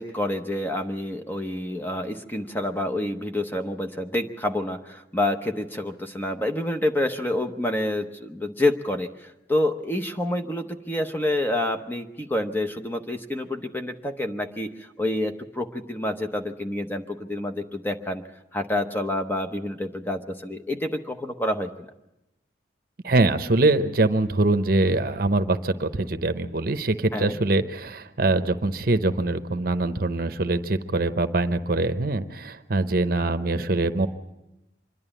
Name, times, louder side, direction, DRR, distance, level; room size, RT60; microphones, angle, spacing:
voice 1, 0.0-18.2 18.5-21.9 27.1-27.4, left 1 dB, 10° left, 6 dB, 0.8 m, -28 dB
voice 2, 23.0-34.1, right 2 dB, 50° right, 10 dB, 0.8 m, -23 dB
25.5 x 11.0 x 9.9 m, 0.95 s
head